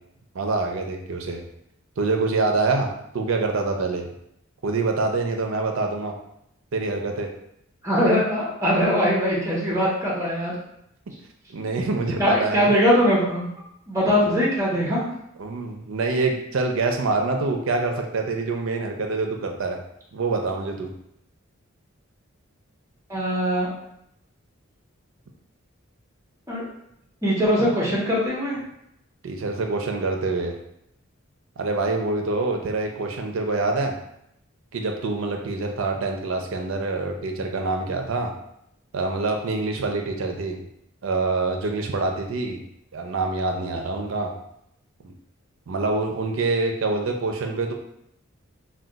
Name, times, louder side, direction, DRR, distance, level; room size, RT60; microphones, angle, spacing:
voice 1, 0.3-1.4 2.0-4.0 4.6-6.1 6.7-7.3 11.5-12.7 15.4-19.8 20.1-20.9 29.2-30.6 31.6-33.9 34.7-38.3 38.9-40.6 41.0-42.6 42.9-44.3 45.0-45.1 45.7-47.7, right 3 dB, 70° right, 3 dB, 0.5 m, -25 dB
voice 2, 7.8-10.6 12.2-13.5 13.9-15.0 23.1-23.7 26.5-26.6 27.2-28.6, equal, 15° right, -5 dB, 0.8 m, -21 dB
2.3 x 2.2 x 3.8 m, 0.77 s
head